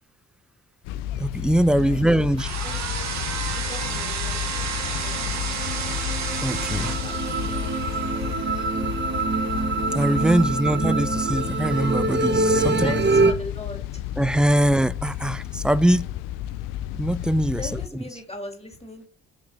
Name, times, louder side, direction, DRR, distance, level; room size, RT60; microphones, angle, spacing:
sound 1, 0.8-17.9, left 13 dB, 80° left, 0.5 m, -32 dB
voice 1, 1.2-2.5 6.4-7.0 9.9-12.9 14.2-16.1 16.9-17.8, right 1 dB, 5° right, 0.3 m, -22 dB
voice 2, 1.8-2.3 2.6-2.8 3.5-6.1 6.7-7.7 8.0-8.3 10.3-10.4 12.7-14.1 17.6-19.1, left 2 dB, 20° left, 2.8 m, -40 dB
sound 2, 2.4-10.5, right 6 dB, 60° right, 1.4 m, -32 dB
sound 3, 4.5-13.3, right 3 dB, 35° right, 1.1 m, -25 dB
6.7 x 3.5 x 5.0 m
hypercardioid pair, 45°, 32 cm